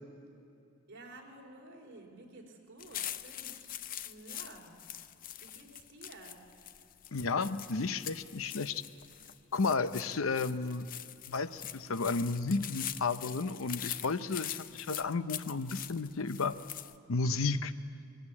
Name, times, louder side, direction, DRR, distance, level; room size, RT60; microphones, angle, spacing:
voice 1, 0.9-4.8 5.4-6.4, right 2 dB, 55° right, 0 dB, 4.0 m, -52 dB
sound 1, 2.8-17.0, left 11 dB, 40° left, 0.5 m, -43 dB
voice 2, 7.1-8.8 9.5-10.9 11.3-16.6 17.1-17.7, left 4 dB, 85° left, 12 dB, 0.7 m, -32 dB
21.5 x 16.0 x 9.7 m, 2.7 s
head